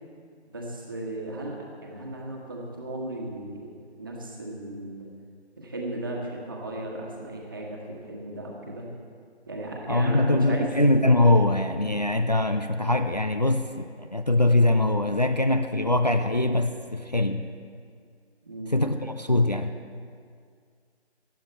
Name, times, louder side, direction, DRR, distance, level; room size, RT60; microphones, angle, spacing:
voice 1, 0.5-3.7 4.0-5.1 5.6-8.9 9.5-10.7 18.4-18.7, right 1 dB, 20° right, -2 dB, 1.5 m, -35 dB
voice 2, 9.9-17.5 18.7-19.7, left 2 dB, 40° left, 7 dB, 0.5 m, -22 dB
19.0 x 12.5 x 4.4 m, 2.1 s
figure-of-eight pair, 165°, 33 cm